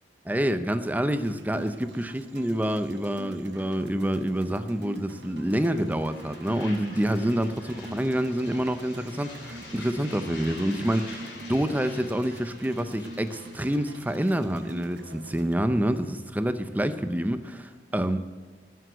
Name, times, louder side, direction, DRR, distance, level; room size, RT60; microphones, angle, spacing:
voice 1, 0.2-18.3, right 1 dB, 10° right, 11 dB, 0.5 m, -27 dB
sound 1, 1.1-15.5, right 1 dB, 65° right, 1.0 m, -45 dB
sound 2, 2.9-17.8, left 2 dB, 65° left, 4.1 m, -47 dB
12.5 x 9.4 x 8.0 m, 1.4 s
head